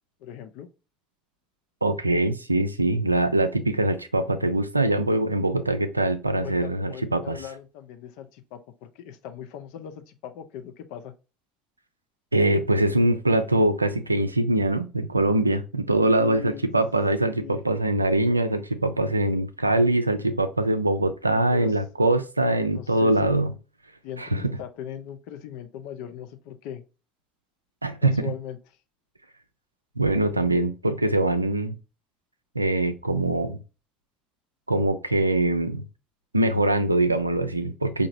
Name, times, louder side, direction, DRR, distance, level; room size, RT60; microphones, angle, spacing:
voice 1, 0.2-0.7 6.4-11.1 16.1-16.7 17.4-17.6 21.5-21.8 22.7-23.3 24.0-26.8 28.0-28.6, left 9 dB, 60° left, 0.5 m, -39 dB
voice 2, 1.8-7.4 12.3-23.5 24.2-24.6 27.8-28.3 30.0-31.7 32.6-33.6 34.7-35.9 36.3-38.1, right 2 dB, 85° right, 0.3 m, -23 dB
4.8 x 2.6 x 2.5 m
figure-of-eight pair, 60°, 0 cm